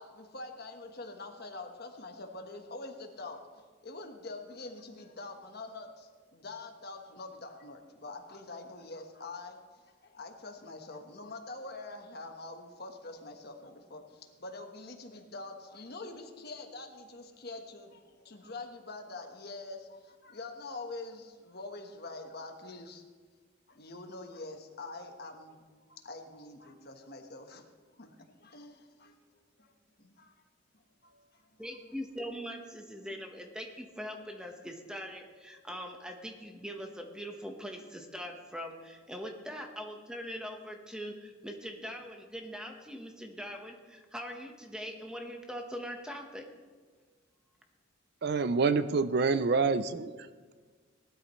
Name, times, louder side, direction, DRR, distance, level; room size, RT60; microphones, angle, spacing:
voice 1, 0.0-23.0 23.7-25.6 25.9-27.6 27.9-29.7 30.0-30.4 30.7-31.6, left 2 dB, 55° left, 4 dB, 1.3 m, -45 dB
voice 2, 31.6-46.5, equal, 5° right, 3 dB, 1.2 m, -42 dB
voice 3, 48.2-50.1, right 4 dB, 55° right, 12 dB, 0.5 m, -27 dB
18.5 x 12.5 x 3.2 m, 1.4 s
head